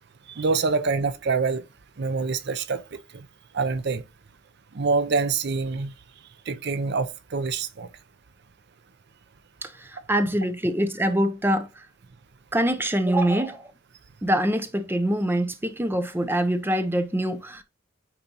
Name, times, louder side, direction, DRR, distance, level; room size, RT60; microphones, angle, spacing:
voice 1, 0.3-1.6 2.0-3.3 3.5-4.0 4.7-5.9 6.5-7.9, right 4 dB, 55° right, 0.6 m, -26 dB
voice 2, 9.6-11.9 12.5-13.7 14.2-17.6, right 1 dB, 10° right, 0.6 m, -24 dB
8.9 x 4.2 x 2.9 m
head